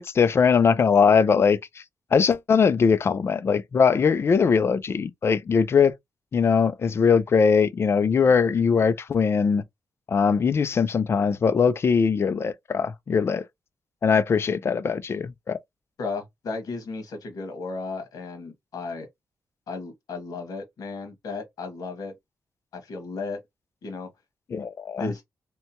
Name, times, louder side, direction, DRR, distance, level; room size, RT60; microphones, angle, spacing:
voice 1, 0.0-1.6 2.1-5.9 6.3-9.6 10.1-13.4 14.0-15.6 24.5-25.1, left 6 dB, 45° left, 0.3 m, -21 dB
voice 2, 16.0-19.1 19.7-22.1 22.7-23.4 23.8-24.1 25.0-25.2, left 3 dB, 80° left, 1.2 m, -34 dB
2.8 x 2.2 x 2.7 m
cardioid pair, 110°, 6 cm